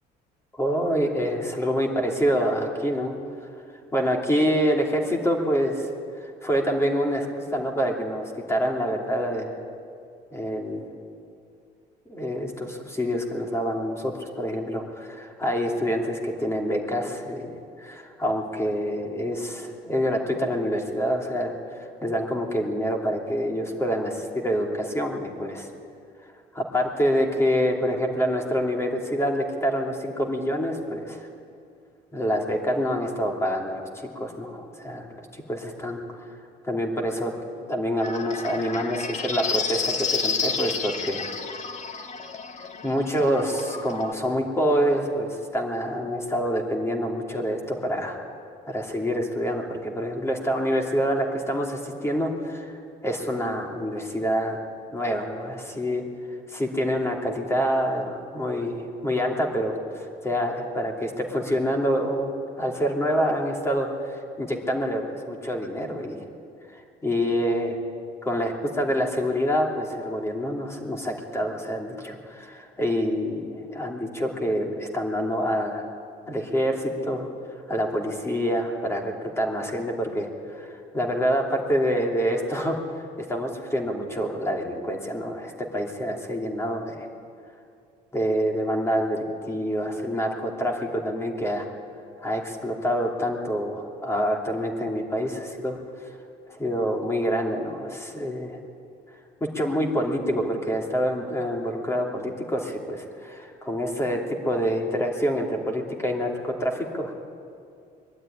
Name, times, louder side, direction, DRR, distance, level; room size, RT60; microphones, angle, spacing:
voice 1, 0.6-3.1 3.9-5.9 6.2-9.6 10.3-10.9 12.1-17.5 17.8-25.7 26.5-31.2 32.1-36.2 36.6-37.3 37.7-41.3 42.8-48.2 48.7-54.6 54.9-56.0 56.5-62.3 62.6-66.2 66.7-67.8 68.2-75.8 76.3-77.3 77.7-82.7 83.3-87.1 88.1-91.7 92.2-95.8 96.5-98.6 99.4-104.2 104.4-107.1, equal, 15° left, 1 dB, 2.8 m, -26 dB
sound 1, 38.0-44.1, left 5 dB, 45° left, 1.5 m, -31 dB
21.5 x 12.0 x 10.0 m, 2.4 s
cardioid pair, 110°, 17 cm